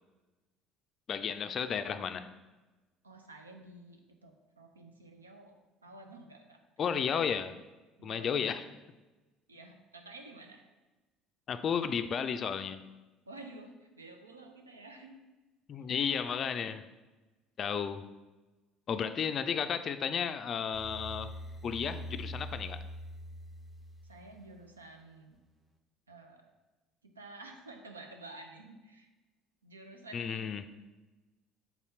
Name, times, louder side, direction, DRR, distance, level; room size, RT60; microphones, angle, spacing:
voice 1, 1.1-2.3 6.8-7.6 8.0-8.6 11.5-12.8 15.7-16.8 17.6-18.0 18.9-21.3 21.6-22.8 30.1-30.7, left 7 dB, 40° left, 10 dB, 0.3 m, -33 dB
voice 2, 3.0-6.6 8.0-8.5 9.5-10.7 13.3-15.3 24.0-25.4 26.1-26.5 27.0-29.1 29.6-30.6, right 2 dB, 85° right, 4 dB, 0.5 m, -51 dB
sound 1, 20.7-24.8, equal, 15° right, 0.7 m, -44 dB
4.2 x 4.2 x 5.4 m, 1.2 s
figure-of-eight pair, 60°, 0 cm